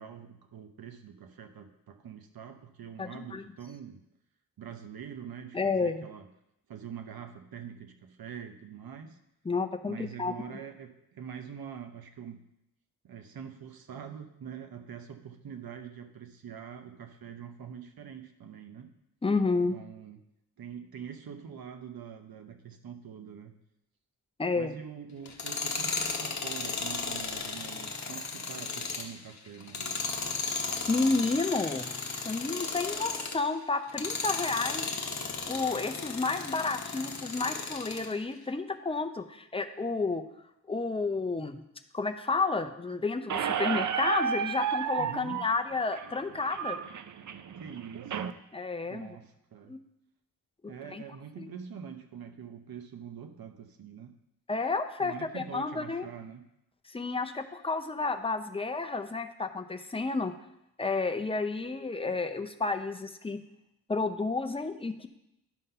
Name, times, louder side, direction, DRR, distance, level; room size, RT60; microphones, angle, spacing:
voice 1, 0.0-4.0 4.6-6.3 6.7-9.2 9.8-12.5 13.0-18.9 19.7-20.2 20.6-23.6 24.5-30.4 45.0-45.5 47.6-48.4 48.9-49.8 50.6-54.1 55.0-56.5, right 7 dB, 70° right, 7 dB, 0.9 m, -44 dB
voice 2, 3.0-3.4 5.5-6.0 9.4-10.6 19.2-19.8 24.4-24.7 30.9-31.9 32.2-34.9 35.5-40.2 40.7-41.6 41.9-46.8 48.5-49.2 49.7-49.8 50.6-51.0 51.4-51.5 54.5-56.0 56.9-60.3 60.8-63.4 63.9-65.1, left 3 dB, 15° left, 8 dB, 0.5 m, -31 dB
Tools, 25.3-33.5 33.9-38.1, left 4 dB, 45° left, 1.0 m, -35 dB
Squeak, 43.3-48.3, right 8 dB, 50° right, 0.5 m, -32 dB
11.0 x 3.9 x 5.5 m, 0.83 s
wide cardioid pair, 100°, 38 cm